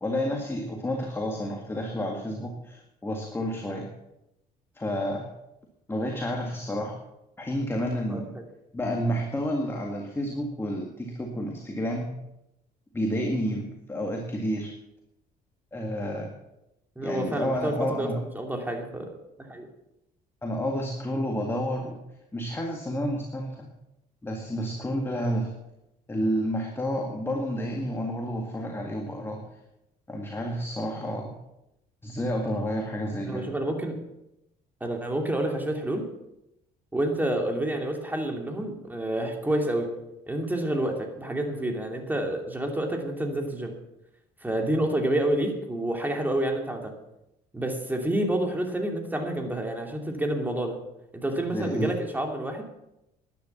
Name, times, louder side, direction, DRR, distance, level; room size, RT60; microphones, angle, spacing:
voice 1, 0.0-3.9 4.8-5.3 5.9-7.0 7.4-8.4 8.7-12.2 12.9-14.7 15.7-16.3 17.0-18.2 20.4-22.0 22.3-23.7 24.2-25.5 26.1-29.5 30.1-31.4 32.0-33.5 51.5-51.9, equal, 15° left, 1 dB, 2.0 m, -30 dB
voice 2, 8.1-8.4 17.0-19.1 19.5-19.7 33.2-34.0 34.8-36.1 36.9-39.9 40.3-43.8 44.4-46.9 47.5-50.8 51.1-52.6, right 1 dB, 10° right, 3 dB, 2.7 m, -28 dB
11.5 x 10.0 x 7.2 m, 0.87 s
cardioid pair, 110°, 17 cm